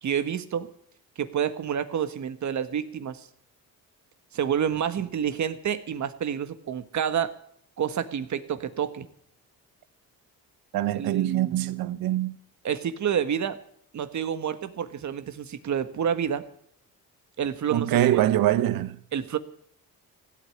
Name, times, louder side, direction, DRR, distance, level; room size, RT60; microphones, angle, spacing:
voice 1, 0.0-0.7 1.2-3.3 4.3-7.3 7.8-9.1 10.9-11.7 12.6-13.6 13.9-16.4 17.4-18.2 19.1-19.4, right 8 dB, 55° right, 1.5 m, -29 dB
voice 2, 10.7-12.4 17.7-19.0, right 13 dB, 80° right, 1.0 m, -24 dB
16.5 x 8.7 x 9.7 m
cardioid pair, 90°, 35 cm